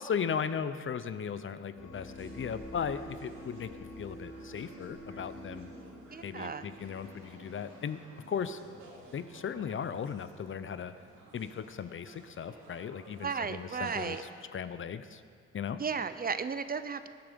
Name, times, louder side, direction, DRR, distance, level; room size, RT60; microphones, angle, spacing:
voice 1, 0.0-5.7 6.2-8.0 8.3-8.6 9.1-10.9 11.3-15.2 15.5-15.8, left 7 dB, 40° left, 12 dB, 0.7 m, -37 dB
sound 1, 1.7-9.1, equal, 60° left, 3.2 m, -49 dB
sound 2, 1.9-14.2, right 2 dB, 70° right, 3.3 m, -53 dB
voice 2, 6.1-6.7 13.2-14.2 15.8-17.1, right 5 dB, 30° right, 12 dB, 0.6 m, -34 dB
20.5 x 8.9 x 5.2 m, 2.3 s
cardioid pair, 90°, 30 cm